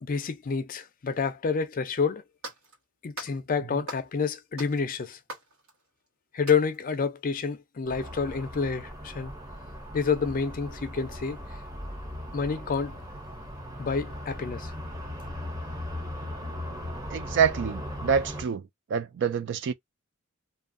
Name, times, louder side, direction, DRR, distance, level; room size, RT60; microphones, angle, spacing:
voice 1, 0.0-2.2 3.0-5.2 6.3-9.3 9.9-11.4 12.3-13.0 13.8-14.7, left 5 dB, 40° left, 0.4 m, -28 dB
sound 1, 1.8-1.9 2.4-2.8 3.2-3.4 3.9-4.2 4.6-6.1 6.5-6.8, right 2 dB, 80° right, 1.3 m, -42 dB
sound 2, 7.8-18.4, left 1 dB, 20° right, 0.9 m, -38 dB
voice 2, 17.1-18.6 18.9-19.7, right 7 dB, 55° right, 0.3 m, -26 dB
2.7 x 2.4 x 2.5 m
head